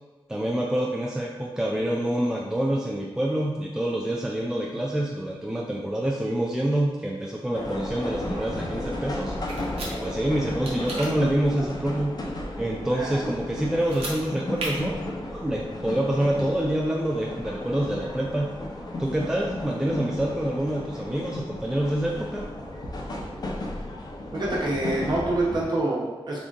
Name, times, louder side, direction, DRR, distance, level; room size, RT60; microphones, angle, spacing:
voice 1, 0.3-9.3 9.9-12.2 12.6-15.0 15.3-18.5 19.0-22.5, right 1 dB, 5° right, -2 dB, 0.3 m, -26 dB
sound 1, 7.5-25.6, left 1 dB, 40° left, 0.5 m, -34 dB
sound 2, 9.5-9.9 10.6-11.1 13.8-14.2 14.6-14.7, right 2 dB, 85° right, 0.9 m, -33 dB
voice 2, 12.9-13.2 24.3-26.4, right 2 dB, 45° right, -5 dB, 1.0 m, -26 dB
3.6 x 3.5 x 2.6 m, 1.3 s
wide cardioid pair, 140°, 10 cm